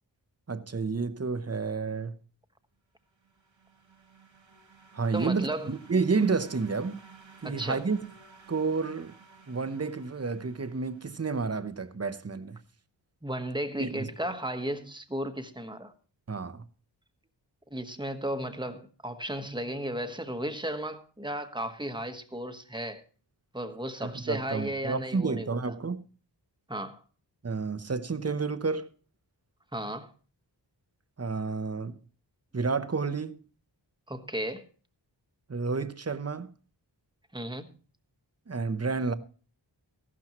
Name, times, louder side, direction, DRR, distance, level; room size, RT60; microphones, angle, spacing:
voice 1, 0.5-2.2 4.9-7.0 7.4-8.0 8.5-9.1 9.5-12.6 13.8-14.1 16.3-16.6 24.0-26.0 27.4-28.9 31.2-32.0 32.5-33.4 35.5-36.5 38.5-39.1, right 4 dB, 35° right, 0.9 m, -30 dB
sound 1, 3.1-11.7, right 5 dB, 85° right, 1.9 m, -54 dB
voice 2, 5.1-5.7 7.4-7.8 13.2-15.9 17.7-23.0 23.5-25.6 26.7-27.0 29.7-30.1 34.1-34.6 37.3-37.7, right 1 dB, 10° right, 1.2 m, -34 dB
15.0 x 12.0 x 3.0 m
wide cardioid pair, 60°, 45 cm